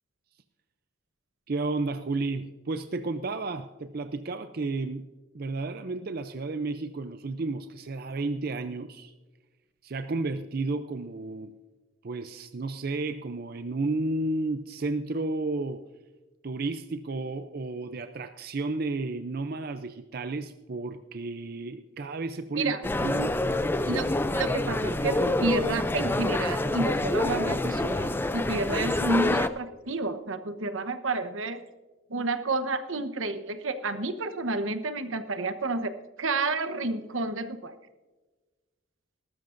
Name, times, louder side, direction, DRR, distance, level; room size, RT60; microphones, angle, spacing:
voice 1, 1.5-5.1 5.3-9.1 9.8-11.5 12.0-15.8 16.4-23.4, right 3 dB, 50° right, 9 dB, 0.5 m, -32 dB
sound 1, 22.8-29.5, left 2 dB, 10° left, 0.4 m, -27 dB
voice 2, 23.8-31.6 32.1-37.8, right 2 dB, 80° right, 9 dB, 1.0 m, -30 dB
19.5 x 13.0 x 2.6 m, 1.2 s
head